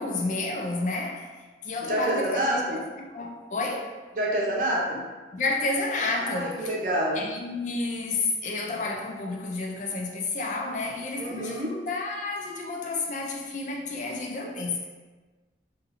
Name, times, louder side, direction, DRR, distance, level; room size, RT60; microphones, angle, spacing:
voice 1, 0.0-2.6 2.9-3.9 5.3-6.7 7.1-14.9, left 3 dB, 45° left, 0 dB, 0.4 m, -30 dB
voice 2, 1.9-2.8 4.2-5.0 6.2-7.2 11.2-11.7, right 1 dB, 50° right, -4 dB, 0.7 m, -27 dB
2.6 x 2.5 x 4.0 m, 1.3 s
head